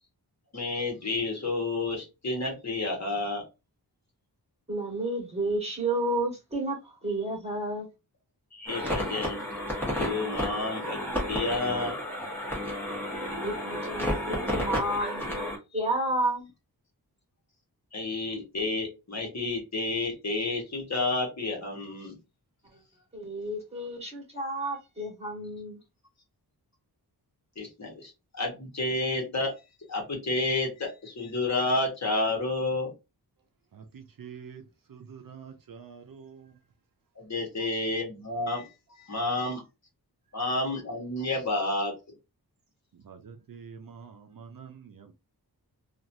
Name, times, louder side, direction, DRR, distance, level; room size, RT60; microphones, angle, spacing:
voice 1, 0.5-3.4 8.5-9.4 9.7-11.0 11.3-12.0 17.9-22.1 27.6-29.5 29.9-32.9 37.1-38.7 39.0-39.6 40.3-41.9, left 2 dB, 45° left, 1.2 m, -30 dB
voice 2, 4.7-7.9 8.7-8.9 13.2-16.5 22.7-22.8 23.1-25.8, right 1 dB, 15° right, 1.6 m, -31 dB
sound 1, 8.7-15.6, left 1 dB, 5° left, 1.2 m, -32 dB
voice 3, 33.7-34.6 34.9-36.6 42.9-45.1, right 6 dB, 60° right, 0.6 m, -47 dB
2.9 x 2.5 x 2.6 m
wide cardioid pair, 120°, 39 cm